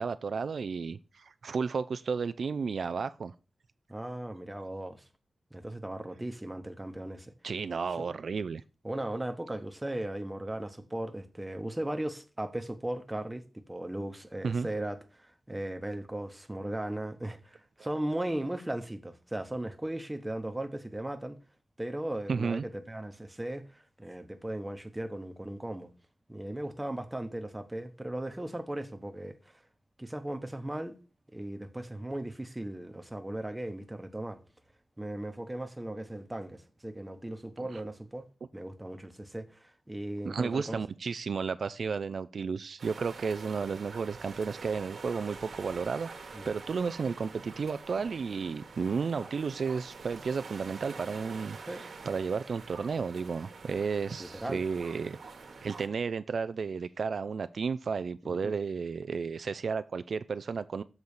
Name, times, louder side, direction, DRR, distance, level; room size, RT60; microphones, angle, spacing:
voice 1, 0.0-3.3 7.4-8.6 14.4-14.7 22.3-22.6 37.6-37.8 40.2-55.2 55.6-60.8, right 5 dB, 70° right, 0.3 m, -33 dB
voice 2, 3.9-5.1 5.5-7.3 8.8-21.4 21.8-25.9 26.3-29.6 30.0-31.0 31.3-34.4 35.0-38.3 38.5-40.8 46.3-46.5 51.7-51.8 54.2-54.6 58.2-58.5, right 1 dB, 10° right, 0.9 m, -37 dB
sound 1, 42.8-55.9, right 4 dB, 85° right, 1.3 m, -47 dB
7.1 x 4.0 x 6.4 m
wide cardioid pair, 130°, 0 cm